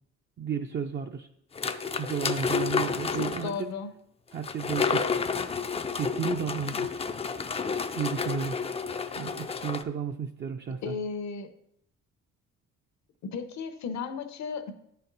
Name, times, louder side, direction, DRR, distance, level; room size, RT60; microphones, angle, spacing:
voice 1, 0.4-1.3 1.9-3.7 4.3-5.1 5.9-6.9 8.0-8.6 9.2-10.9, right 7 dB, 35° right, 3 dB, 0.4 m, -33 dB
sound 1, 1.5-3.6 4.4-9.8, left 5 dB, 20° left, 0.4 m, -30 dB
voice 2, 3.2-3.9 10.8-11.5 13.2-14.7, left 5 dB, 65° left, 9 dB, 0.8 m, -34 dB
9.3 x 4.3 x 3.9 m, 0.76 s
cardioid pair, 90°, 30 cm